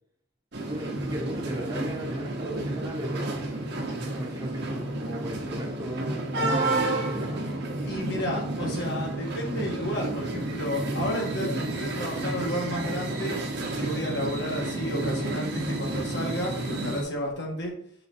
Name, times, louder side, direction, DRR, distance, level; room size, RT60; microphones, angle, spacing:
sound 1, 0.5-17.0, right 2 dB, 55° right, 1.1 m, -31 dB
voice 1, 0.6-3.3 3.9-7.4, right 1 dB, 20° right, -3 dB, 1.0 m, -36 dB
voice 2, 7.8-13.4 13.8-17.7, equal, 60° left, -1 dB, 1.6 m, -32 dB
5.7 x 3.8 x 4.3 m, 0.66 s
head